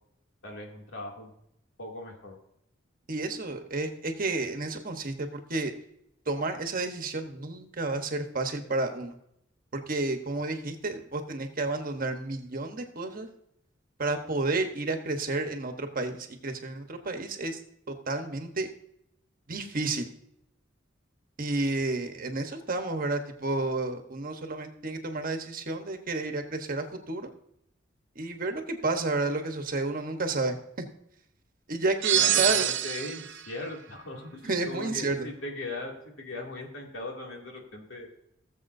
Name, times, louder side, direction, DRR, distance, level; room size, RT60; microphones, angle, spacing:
voice 1, 0.4-1.3 1.8-2.4 32.1-38.1, left 2 dB, 80° left, -1 dB, 2.6 m, -39 dB
voice 2, 3.1-5.7 6.3-9.2 9.7-13.3 14.0-17.6 17.9-18.7 19.5-20.1 21.4-27.3 28.1-30.6 31.7-32.6 34.4-35.3, right 2 dB, 50° right, 6 dB, 1.1 m, -31 dB
sound 1, 32.0-33.4, right 11 dB, 65° right, 0.5 m, -25 dB
17.5 x 7.3 x 2.7 m, 0.76 s
head